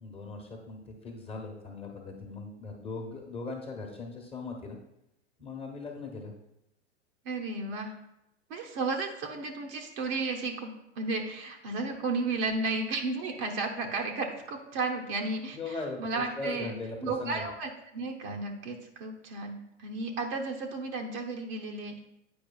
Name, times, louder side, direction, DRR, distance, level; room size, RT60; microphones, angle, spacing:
voice 1, 0.0-4.8 5.4-6.3 15.5-17.4, left 3 dB, 15° left, 1 dB, 1.1 m, -39 dB
voice 2, 7.2-7.9 8.5-16.7 17.0-22.0, right 3 dB, 45° right, 2 dB, 0.9 m, -33 dB
8.6 x 4.8 x 2.3 m, 0.85 s
hypercardioid pair, 105°, 37 cm